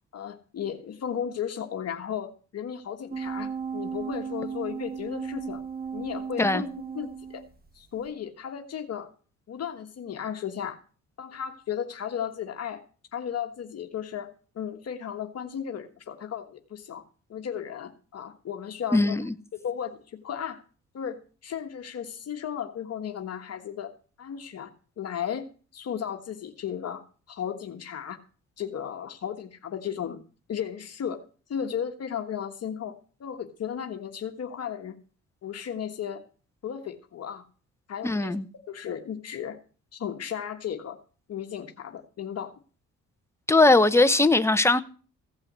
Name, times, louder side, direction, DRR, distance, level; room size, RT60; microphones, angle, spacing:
voice 1, 0.1-5.6 5.9-6.7 6.9-7.4 7.7-9.1 9.5-10.8 11.2-12.8 13.1-17.0 17.3-19.2 19.5-20.6 20.9-23.9 24.2-24.7 25.0-25.5 25.7-28.2 28.6-30.2 30.5-31.2 31.5-32.9 33.2-35.0 35.4-36.2 36.6-37.4 37.9-38.3 38.7-39.6 39.9-41.0 41.3-42.5, left 8 dB, 55° left, 1.5 m, -35 dB
sound 1, 3.1-7.7 8.1-8.2, right 6 dB, 30° right, 1.6 m, -35 dB
voice 2, 18.9-19.3 38.0-38.4 43.5-44.8, left 2 dB, 10° left, 1.0 m, -20 dB
16.0 x 5.6 x 8.1 m
cardioid pair, 90°, 30 cm